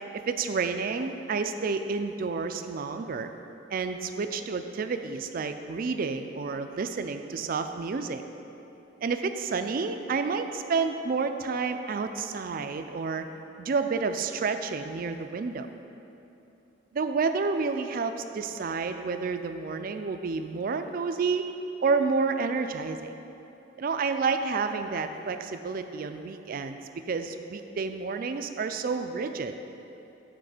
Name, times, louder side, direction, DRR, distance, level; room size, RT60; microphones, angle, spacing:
voice 1, 0.1-3.3 3.7-8.2 9.0-13.2 13.6-15.7 16.9-21.5 21.8-23.1 23.8-26.8 27.1-29.5, right 4 dB, 45° right, 8 dB, 0.4 m, -30 dB
10.0 x 3.7 x 4.9 m, 2.9 s
head